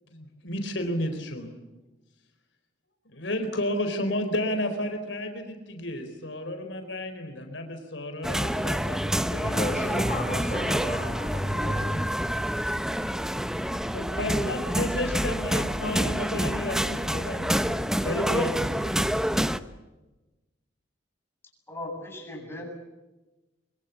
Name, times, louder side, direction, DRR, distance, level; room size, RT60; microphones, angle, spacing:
voice 1, 0.1-1.5 3.1-9.0 9.3-10.0 13.8-19.0, left 1 dB, 70° left, 6 dB, 4.3 m, -32 dB
sound 1, 8.2-19.6, equal, 5° right, 0.8 m, -27 dB
voice 2, 9.4-12.3, left 1 dB, 35° left, 2 dB, 3.6 m, -33 dB
voice 3, 21.7-22.7, left 1 dB, 15° left, 0 dB, 7.8 m, -37 dB
25.0 x 24.0 x 8.5 m, 1.1 s
head